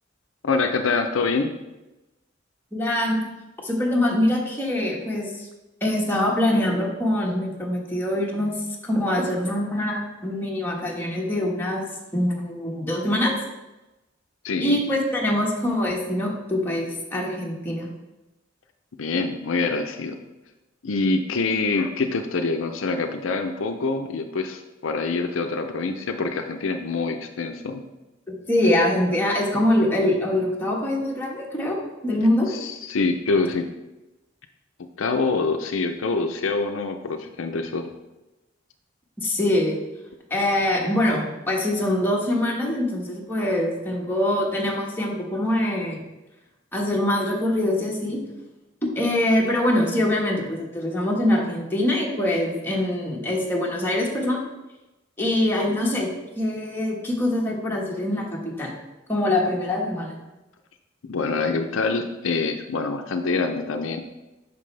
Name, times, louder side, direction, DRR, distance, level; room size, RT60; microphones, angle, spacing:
voice 1, 0.4-1.6 14.4-14.8 19.0-20.2 20.8-27.8 32.5-33.7 35.0-37.9 61.0-64.0, left 3 dB, 75° left, 6 dB, 0.6 m, -25 dB
voice 2, 2.7-3.3 3.6-5.5 5.8-8.5 8.8-11.8 12.1-13.4 14.6-17.9 28.3-32.5 39.2-39.8 40.3-46.0 46.7-48.2 48.8-54.4 55.2-56.1 56.4-58.7 59.1-60.1, left 1 dB, 10° left, -3 dB, 1.4 m, -24 dB
9.0 x 6.1 x 3.3 m, 1.0 s
head